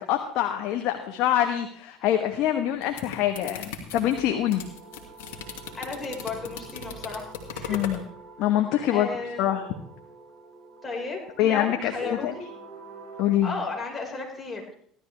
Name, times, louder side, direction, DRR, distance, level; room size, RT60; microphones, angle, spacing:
voice 1, 0.0-4.6 7.7-8.0 8.4-9.1 9.4-9.6 11.4-12.3 13.2-13.5, left 11 dB, 65° left, 4 dB, 1.2 m, -25 dB
sound 1, 2.6-8.0, left 6 dB, 80° left, 2.1 m, -38 dB
sound 2, 4.4-13.3, right 4 dB, 40° right, 5.0 m, -47 dB
voice 2, 5.7-7.8 8.9-9.4 10.8-12.5 13.4-14.7, left 3 dB, 20° left, -1 dB, 4.9 m, -34 dB
16.0 x 12.0 x 3.4 m, 0.62 s
hypercardioid pair, 80°, 0 cm